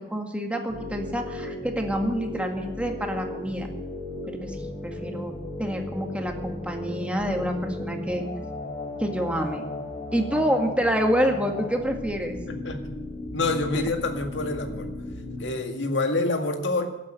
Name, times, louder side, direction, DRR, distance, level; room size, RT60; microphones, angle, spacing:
voice 1, 0.0-3.7 4.3-4.6 4.8-5.3 5.6-8.2 9.0-9.7 10.1-12.4 13.7-13.8, equal, 5° right, 3 dB, 1.9 m, -27 dB
sound 1, 0.7-15.5, left 2 dB, 40° left, 4.5 m, -36 dB
voice 2, 12.5-12.8 13.3-14.9 15.4-16.9, left 2 dB, 80° left, 5 dB, 2.0 m, -27 dB
15.5 x 8.4 x 9.3 m, 1.0 s
head